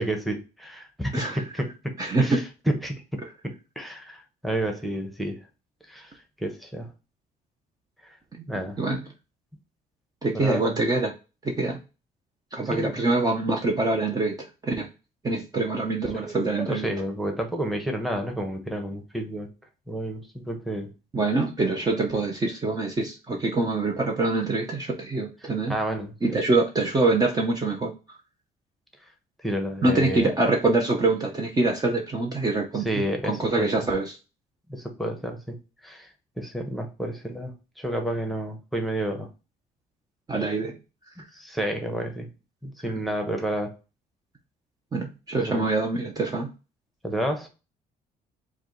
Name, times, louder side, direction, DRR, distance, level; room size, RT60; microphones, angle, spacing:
voice 1, 0.0-5.4 5.9-6.9 8.0-8.2 8.5-8.8 10.3-10.8 12.7-13.0 16.1-19.5 19.9-20.9 25.4-26.4 29.4-30.3 32.8-33.9 34.7-35.6 35.8-39.3 41.3-42.3 42.6-43.8 45.5-45.7 47.0-47.5, right 1 dB, ahead, 3 dB, 1.0 m, -31 dB
voice 2, 2.0-2.4 8.4-8.5 8.8-9.0 10.2-11.1 11.4-11.8 12.5-14.9 15.2-16.9 21.1-25.7 26.2-27.9 29.8-32.9 33.3-34.2 40.3-40.8 44.9-46.5, right 2 dB, 20° right, 0 dB, 0.8 m, -25 dB
4.7 x 2.3 x 3.9 m, 0.30 s
cardioid pair, 110°, 17 cm